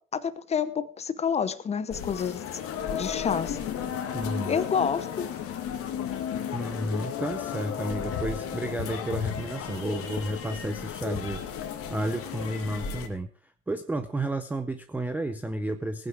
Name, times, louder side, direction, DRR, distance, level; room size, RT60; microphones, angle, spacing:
voice 1, 0.1-2.6 2.9-3.6 4.4-5.3, left 7 dB, 15° left, 15 dB, 0.8 m, -29 dB
sound 1, 1.9-13.1, left 8 dB, 35° left, 2.1 m, -34 dB
voice 2, 4.1-4.6 6.5-11.4 11.9-13.3 13.7-16.1, right 1 dB, 5° right, 10 dB, 0.5 m, -31 dB
18.0 x 9.2 x 4.8 m, 0.43 s
hypercardioid pair, 110°, 41 cm